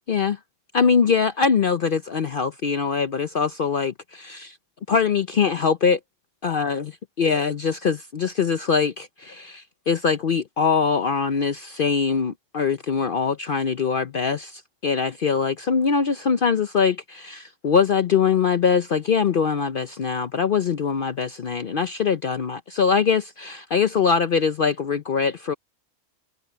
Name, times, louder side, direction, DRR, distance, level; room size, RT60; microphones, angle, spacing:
voice 1, 0.1-0.4 0.7-4.6 4.9-6.0 6.4-25.5, left 6 dB, 50° left, 0.8 m, -22 dB
omnidirectional pair, 1.3 m